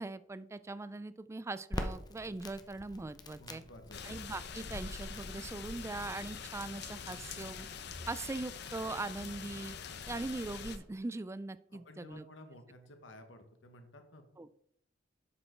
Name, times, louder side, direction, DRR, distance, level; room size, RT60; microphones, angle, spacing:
voice 1, 0.0-3.6 4.0-7.7 8.1-9.7 10.1-12.2 14.4-14.5, right 2 dB, 15° right, 15 dB, 0.3 m, -41 dB
Crackle, 1.7-9.0, left 1 dB, 20° left, 0.7 m, -47 dB
voice 2, 3.4-4.1 11.7-14.2, left 1 dB, 90° left, 6 dB, 1.4 m, -54 dB
sound 1, 3.9-10.8, left 6 dB, 60° left, 0.7 m, -44 dB
7.6 x 6.5 x 4.4 m, 0.71 s
head